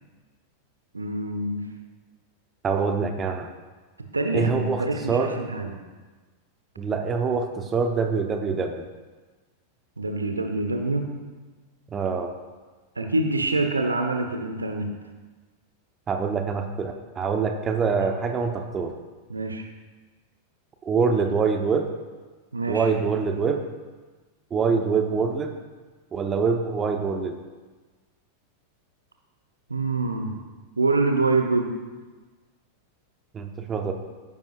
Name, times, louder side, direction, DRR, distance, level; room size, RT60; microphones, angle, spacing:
voice 1, 0.9-1.6 4.1-5.8 10.0-11.1 13.0-14.9 19.3-19.7 22.5-22.9 29.7-30.3 30.8-31.8, right 2 dB, 80° right, 5 dB, 1.1 m, -25 dB
voice 2, 2.6-3.5 4.3-5.3 6.8-8.8 11.9-12.3 16.1-18.9 20.8-21.9 22.7-23.6 24.5-25.5 26.1-27.4 33.3-33.9, right 5 dB, 25° right, 4 dB, 1.0 m, -25 dB
14.5 x 11.0 x 2.5 m, 1.3 s
figure-of-eight pair, 90°, 0 cm